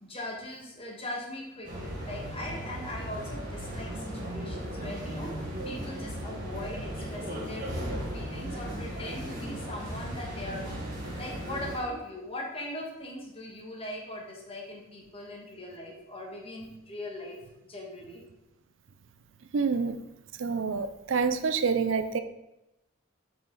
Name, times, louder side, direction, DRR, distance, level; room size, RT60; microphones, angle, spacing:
voice 1, 0.1-10.8 11.2-17.4 17.6-18.2, left 1 dB, 25° left, -1 dB, 1.5 m, -40 dB
sound 1, 1.6-11.8, equal, 40° right, 1.9 m, -36 dB
voice 2, 19.5-20.0 20.4-22.2, right 5 dB, 65° right, 10 dB, 0.5 m, -27 dB
7.5 x 5.2 x 3.9 m, 0.91 s
head